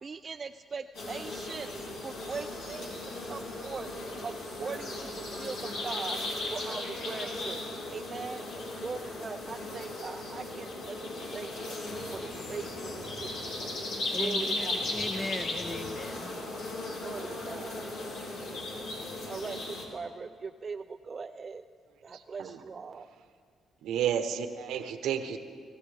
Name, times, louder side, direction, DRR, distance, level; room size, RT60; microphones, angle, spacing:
voice 1, 0.0-1.7 2.0-2.9 3.2-3.9 4.2-4.3 4.6-6.2 6.5-8.4 8.8-11.8 12.1-13.8 14.2-14.9 17.0-17.8 19.3-21.6 22.0-23.1, right 5 dB, 40° right, 8 dB, 0.4 m, -40 dB
sound 1, 0.9-19.9, left 2 dB, 80° left, 3.2 m, -37 dB
sound 2, 11.9-13.6 14.8-16.3, left 1 dB, 50° left, 3.0 m, -50 dB
voice 2, 14.1-16.3, left 2 dB, 30° left, 8 dB, 0.9 m, -38 dB
voice 3, 22.1-22.6 23.8-25.4, right 9 dB, 85° right, 8 dB, 0.9 m, -32 dB
24.0 x 15.0 x 3.4 m, 2.2 s
cardioid pair, 90°, 0 cm